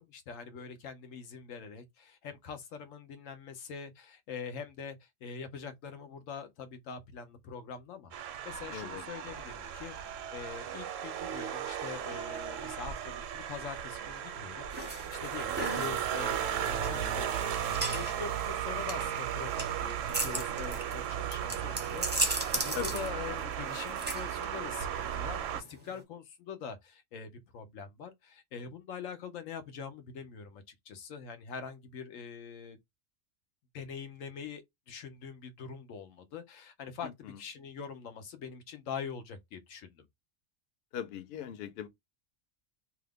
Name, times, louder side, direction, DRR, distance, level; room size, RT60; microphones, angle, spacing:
voice 1, 0.0-32.8 33.7-40.1, left 6 dB, 85° left, 1.1 m, -44 dB
sound 1, 8.1-25.6, right 9 dB, 80° right, 0.9 m, -35 dB
voice 2, 8.7-9.0 22.7-23.0 37.0-37.4 40.9-41.9, left 9 dB, 60° left, 0.8 m, -40 dB
sound 2, 14.7-26.0, right 2 dB, 10° right, 0.6 m, -38 dB
2.8 x 2.4 x 3.4 m
omnidirectional pair, 1.3 m